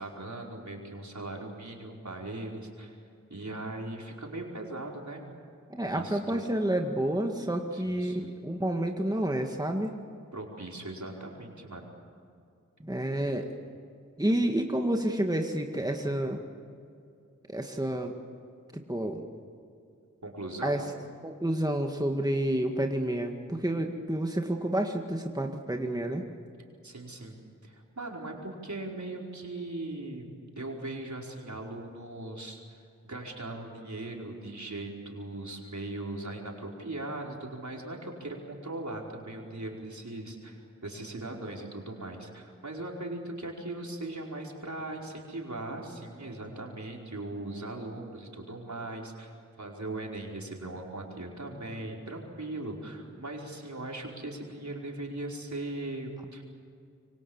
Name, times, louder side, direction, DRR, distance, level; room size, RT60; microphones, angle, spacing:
voice 1, 0.0-3.0 3.3-5.2 5.9-6.4 7.7-8.3 10.3-11.9 20.2-20.8 26.8-32.8 33.0-56.4, right 2 dB, 65° right, -1 dB, 4.9 m, -39 dB
voice 2, 5.7-9.9 12.8-13.5 14.2-16.4 17.5-18.1 18.7-19.2 20.6-20.8 21.2-26.3, right 1 dB, 10° right, 3 dB, 2.0 m, -29 dB
26.5 x 24.0 x 7.2 m, 2.4 s
wide cardioid pair, 50°, 31 cm